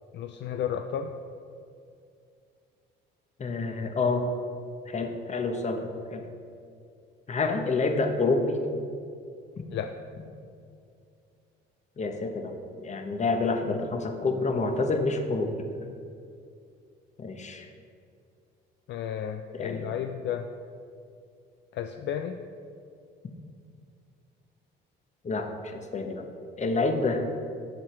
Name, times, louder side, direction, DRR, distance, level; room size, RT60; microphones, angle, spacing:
voice 1, 0.1-1.1 9.7-9.9 18.9-20.5 21.7-22.4, left 9 dB, 60° left, 6 dB, 0.4 m, -32 dB
voice 2, 3.4-4.2 4.9-6.2 7.3-8.6 12.0-12.5 12.8-15.7 17.2-17.7 19.5-19.9 25.2-26.3 26.6-27.2, left 3 dB, 35° left, 5 dB, 1.0 m, -28 dB
7.4 x 4.9 x 5.9 m, 2.4 s
cardioid pair, 85°, 21 cm